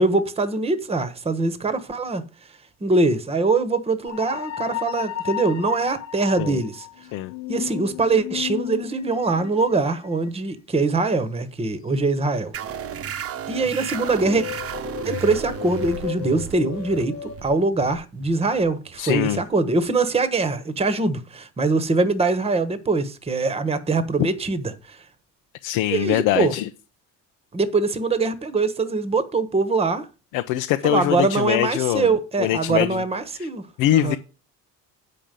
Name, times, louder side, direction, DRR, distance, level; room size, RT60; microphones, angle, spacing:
voice 1, 0.0-2.2 2.8-6.8 7.5-12.5 13.5-14.4 15.0-25.0 25.9-26.5 27.5-30.1 30.8-33.6 33.9-34.2, right 3 dB, 15° right, 1.1 m, -23 dB
sound 1, 4.1-9.7 14.2-17.4, left 13 dB, 55° left, 1.2 m, -33 dB
sound 2, 12.5-19.7, right 8 dB, 40° right, 0.8 m, -34 dB
voice 2, 19.0-19.4 25.6-26.7 30.3-32.1 32.4-33.0 33.4-33.5 33.8-34.2, left 13 dB, 90° left, 0.8 m, -22 dB
8.6 x 5.2 x 7.5 m
cardioid pair, 110°, 34 cm